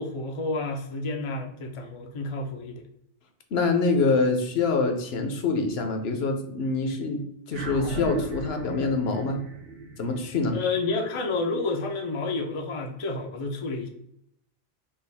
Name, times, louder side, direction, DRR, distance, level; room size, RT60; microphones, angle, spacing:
voice 1, 0.0-2.8 10.5-13.9, left 3 dB, 45° left, 3 dB, 0.4 m, -30 dB
voice 2, 3.5-9.4 10.0-10.6, left 3 dB, 65° left, 6 dB, 0.9 m, -25 dB
sound 1, 7.5-12.1, right 3 dB, 85° right, 1.1 m, -38 dB
5.3 x 2.4 x 3.3 m, 0.77 s
omnidirectional pair, 1.2 m